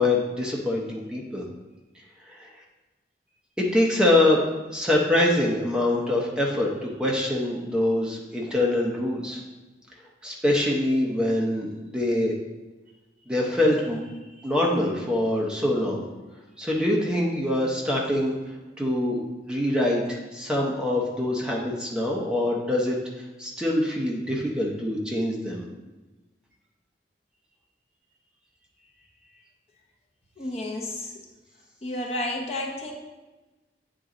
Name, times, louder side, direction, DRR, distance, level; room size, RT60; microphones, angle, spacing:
voice 1, 0.0-1.4 2.3-2.5 3.7-4.4 4.7-9.4 10.2-12.3 13.3-14.0 14.4-16.1 16.6-18.3 18.8-19.2 19.5-23.0 23.4-25.6, left 1 dB, 5° right, -2 dB, 0.8 m, -24 dB
voice 2, 30.4-31.1 31.8-32.9, left 1 dB, 35° left, 0 dB, 0.8 m, -31 dB
8.7 x 3.8 x 3.9 m, 1.2 s
head